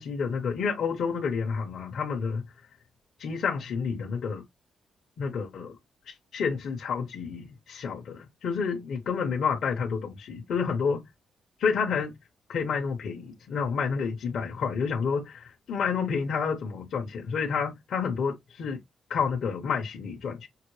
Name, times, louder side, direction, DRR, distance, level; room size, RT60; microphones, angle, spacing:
voice 1, 0.0-2.5 3.2-4.4 5.2-5.8 6.1-11.0 11.6-12.1 12.5-18.8 19.1-20.5, left 6 dB, 70° left, 1.1 m, -29 dB
5.8 x 2.2 x 3.2 m
cardioid pair, 95°, 0 cm